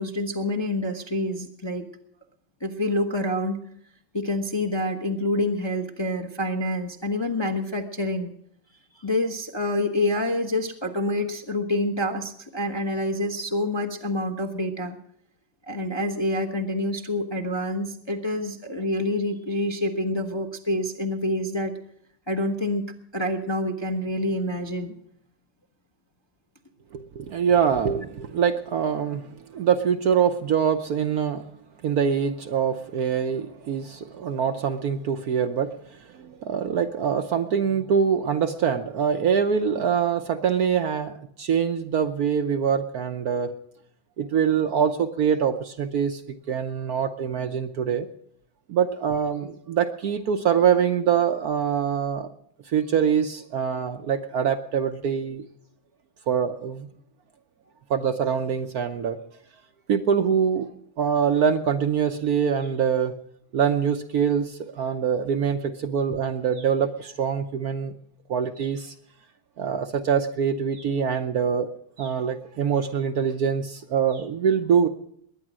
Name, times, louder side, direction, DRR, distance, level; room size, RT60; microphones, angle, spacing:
voice 1, 0.0-1.9 2.6-3.6 4.1-8.3 8.9-15.0 15.7-21.7 22.3-24.9, left 1 dB, 20° left, 5 dB, 0.8 m, -27 dB
voice 2, 26.9-31.5 31.8-43.5 44.2-46.2 46.5-48.1 48.7-52.3 52.7-55.5 56.3-56.9 57.9-59.2 59.9-60.7 61.0-63.1 63.5-67.9 68.3-68.9 69.6-71.7 72.0-74.9, right 7 dB, 60° right, 7 dB, 1.1 m, -24 dB
21.0 x 10.0 x 6.2 m, 0.68 s
omnidirectional pair, 2.1 m